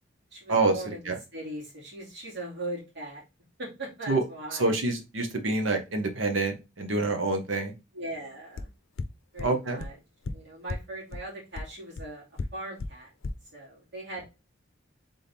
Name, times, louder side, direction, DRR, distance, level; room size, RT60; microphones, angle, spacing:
voice 1, 0.3-1.0 1.3-3.2 3.6-4.7 7.6-8.7 9.3-10.0 10.3-12.2 12.5-13.1 13.5-14.2, right 1 dB, 60° right, -5 dB, 2.4 m, -39 dB
voice 2, 4.6-7.7 9.4-9.8, right 3 dB, 80° right, 5 dB, 1.0 m, -26 dB
sound 1, 8.6-8.7 9.0-9.1 9.4-9.5 9.8-9.9 10.2-10.3 10.7-10.8 11.1-11.2 11.6-11.7 12.0-12.1 12.4-12.5 12.8-12.9 13.2-13.3, left 4 dB, 85° left, 0.5 m, -33 dB
3.7 x 3.5 x 4.1 m, 0.27 s
head